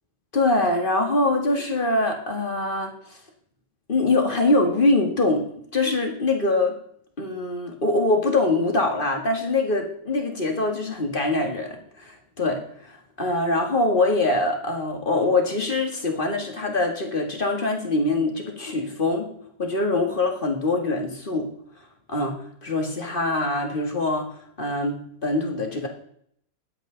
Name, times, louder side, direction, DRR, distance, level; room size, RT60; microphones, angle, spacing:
voice 1, 0.3-3.2 3.9-5.5 5.7-6.7 7.2-19.3 19.6-21.5 22.1-24.3 24.6-25.9, left 2 dB, 30° left, 3 dB, 1.9 m, -23 dB
20.0 x 8.1 x 3.9 m, 0.67 s
omnidirectional pair, 1.9 m